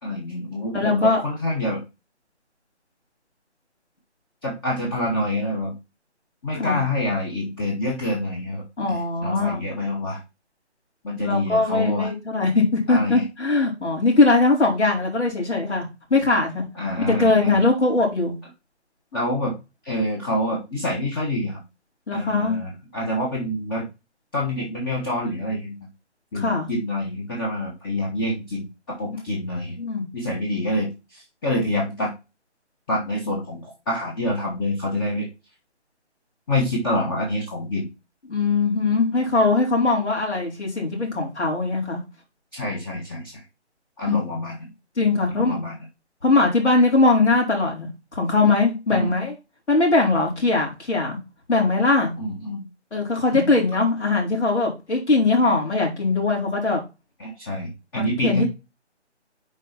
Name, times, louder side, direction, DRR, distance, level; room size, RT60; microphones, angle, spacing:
voice 1, 0.0-1.8 4.4-5.7 6.4-10.2 11.0-12.1 12.9-13.2 16.7-17.6 19.1-19.5 19.8-21.6 22.1-23.9 24.3-25.9 26.3-29.8 30.1-32.1 32.9-35.3 36.5-37.9 42.5-43.4 44.0-44.7 45.3-45.8 48.9-49.1 52.2-52.7 53.3-53.5 57.2-58.5, left 1 dB, 20° left, -1 dB, 1.4 m, -27 dB
voice 2, 0.7-1.2 6.5-6.8 8.8-9.6 11.2-16.6 17.0-18.3 22.1-22.6 26.3-26.7 29.8-30.1 38.3-42.0 44.1-44.2 45.0-45.6 46.2-49.3 49.7-51.2 51.5-52.1 52.9-56.8 57.9-58.5, left 3 dB, 75° left, -1 dB, 4.5 m, -21 dB
7.3 x 4.8 x 4.3 m, 0.25 s
figure-of-eight pair, 155°, 35 cm